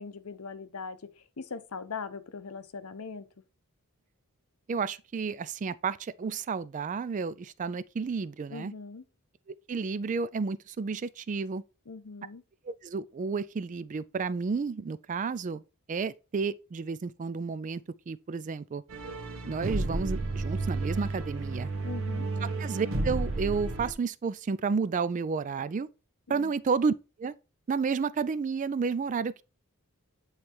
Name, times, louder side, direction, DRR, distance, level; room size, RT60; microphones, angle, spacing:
voice 1, 0.0-3.3 8.5-9.0 11.9-12.4 21.8-22.3 26.3-26.5, left 5 dB, 70° left, 0.7 m, -40 dB
voice 2, 4.7-8.7 9.5-11.6 12.7-15.6 15.9-18.8 19.5-21.7 22.4-25.9 26.3-26.9 27.2-27.3 27.7-29.4, right 5 dB, 35° right, 0.3 m, -31 dB
sound 1, 18.9-23.9, right 2 dB, 60° right, 1.0 m, -32 dB
8.6 x 3.3 x 4.4 m
head